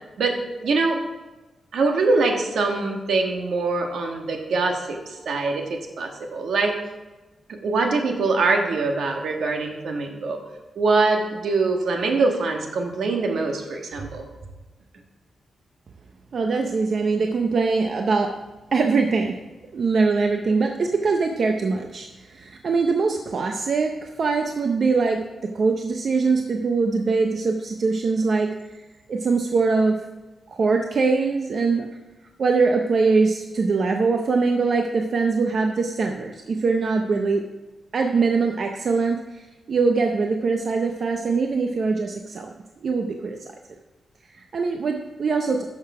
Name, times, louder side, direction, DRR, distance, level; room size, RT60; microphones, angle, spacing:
voice 1, 0.6-1.0 1.7-6.8 7.5-10.4 10.7-14.2, right 3 dB, 75° right, 3 dB, 1.5 m, -23 dB
voice 2, 16.3-18.3 18.7-19.4 19.7-28.8 29.1-30.0 30.5-31.9 32.4-37.4 37.9-42.5 42.8-43.4 44.3-45.6, right 4 dB, 50° right, 4 dB, 0.6 m, -22 dB
11.5 x 6.7 x 4.8 m, 1.2 s
wide cardioid pair, 170°, 0 cm